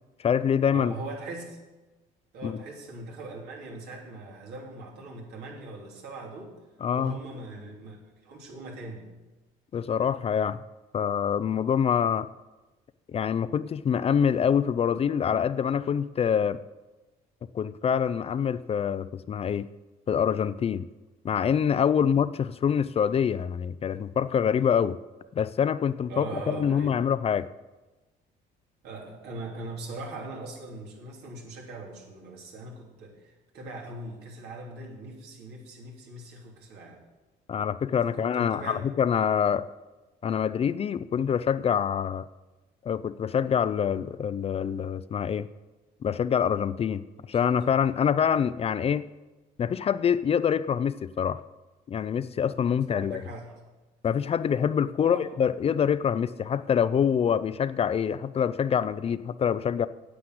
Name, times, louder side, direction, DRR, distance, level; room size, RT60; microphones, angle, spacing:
voice 1, 0.2-0.9 2.4-2.6 6.8-7.1 9.7-10.6 10.9-12.3 13.1-16.6 17.5-19.7 20.1-20.9 21.2-25.0 25.3-27.5 37.5-39.7 40.2-42.3 42.8-45.5 46.0-49.1 49.6-51.4 51.9-53.2 54.0-59.9, left 8 dB, 35° left, 14 dB, 0.5 m, -25 dB
voice 2, 0.7-1.6 2.3-6.6 6.9-9.1 12.0-12.1 22.0-22.1 26.1-27.0 28.8-37.0 38.1-38.9 47.2-47.8 48.1-48.2 52.9-53.6 55.0-55.3, right 2 dB, 75° right, 0 dB, 3.0 m, -41 dB
9.7 x 8.4 x 7.8 m, 1.1 s
cardioid pair, 110°, 17 cm